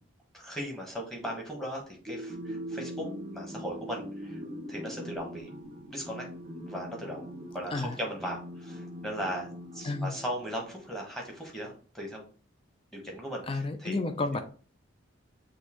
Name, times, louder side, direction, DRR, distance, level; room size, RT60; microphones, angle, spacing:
voice 1, 0.3-4.4 4.7-5.5 5.9-6.3 6.7-9.5 9.7-12.2 12.9-14.0, equal, ahead, -1 dB, 1.0 m, -38 dB
sound 1, 2.1-10.8, equal, 30° right, 0.6 m, -42 dB
voice 2, 13.5-14.4, left 3 dB, 25° left, 8 dB, 0.4 m, -31 dB
6.3 x 2.7 x 2.9 m, 0.41 s
head